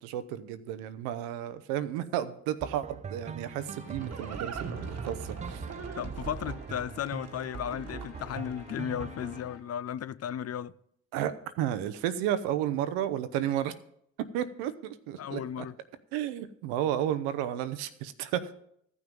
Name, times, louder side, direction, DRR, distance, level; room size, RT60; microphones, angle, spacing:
voice 1, 0.0-5.7 11.1-13.7 14.3-15.7 16.1-18.5, right 11 dB, 85° right, 0.7 m, -32 dB
sound 1, 2.6-9.4, right 6 dB, 20° right, 0.4 m, -42 dB
Livestock farm animals working animals, 3.3-8.4, right 5 dB, 45° right, 1.3 m, -41 dB
sound 2, 3.6-9.6, left 7 dB, 90° left, 1.6 m, -51 dB
voice 2, 6.0-10.7 15.2-15.8, left 9 dB, 45° left, 0.5 m, -35 dB
14.0 x 6.1 x 5.3 m
hypercardioid pair, 55°, 36 cm